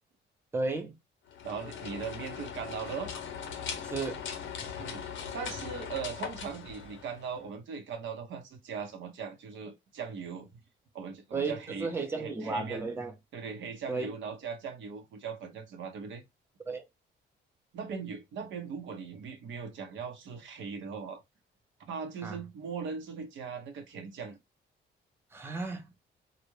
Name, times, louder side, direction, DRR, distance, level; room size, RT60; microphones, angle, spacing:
voice 1, 0.5-0.9 3.8-4.3 11.3-13.1 13.9-14.1 16.7-16.9 22.2-22.4 25.3-25.9, right 3 dB, 10° right, 0.6 m, -34 dB
sound 1, 1.3-7.5, left 7 dB, 75° left, 0.7 m, -40 dB
voice 2, 1.4-3.1 4.8-5.0 5.3-10.6 10.9-12.9 13.3-16.2 17.7-21.2 21.9-24.4, right 6 dB, 70° right, 0.7 m, -39 dB
2.3 x 2.0 x 3.0 m
cardioid pair, 90°, 20 cm